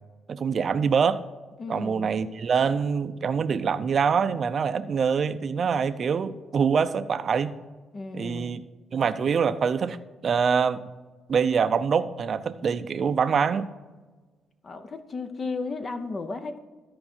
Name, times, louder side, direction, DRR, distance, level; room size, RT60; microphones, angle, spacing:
voice 1, 0.3-1.2 1.7-7.6 8.1-8.6 8.9-10.0 10.2-10.9 11.3-13.7, right 6 dB, 50° right, 12 dB, 0.5 m, -24 dB
voice 2, 1.6-2.1 7.9-8.6 14.6-16.6, left 3 dB, 40° left, 8 dB, 0.8 m, -34 dB
13.5 x 4.8 x 4.4 m, 1.3 s
cardioid pair, 90°, 0 cm